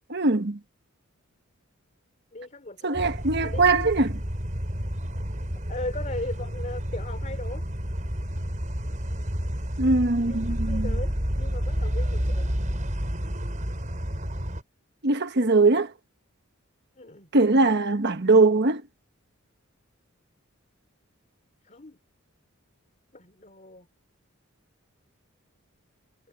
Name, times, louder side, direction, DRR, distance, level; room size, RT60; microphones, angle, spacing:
voice 1, 0.1-0.6 2.8-4.1 9.8-10.9 15.0-15.9 17.3-18.8, right 3 dB, 55° right, 1.2 m, -21 dB
voice 2, 2.3-3.0 3.4-3.9 5.7-7.7 10.3-12.5 17.0-17.3 21.6-22.0 23.1-23.9, left 2 dB, 35° left, 3.0 m, -38 dB
sound 1, 2.9-14.6, equal, 35° right, 5.6 m, -30 dB
head